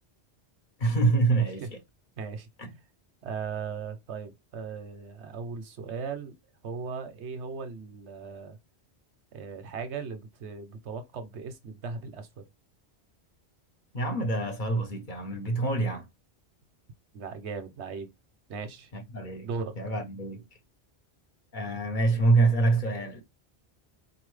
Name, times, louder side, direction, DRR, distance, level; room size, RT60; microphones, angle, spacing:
voice 1, 0.8-1.7 2.6-2.7 13.9-16.1 18.9-19.5 19.8-20.5 21.5-23.2, right 3 dB, 50° left, 1.1 m, -26 dB
voice 2, 1.3-1.7 2.2-2.5 3.2-6.3 6.6-8.6 9.3-12.4 17.1-18.1 18.5-18.9 19.4-19.8, right 5 dB, 90° right, 1.1 m, -37 dB
4.3 x 2.7 x 3.1 m
omnidirectional pair, 1.1 m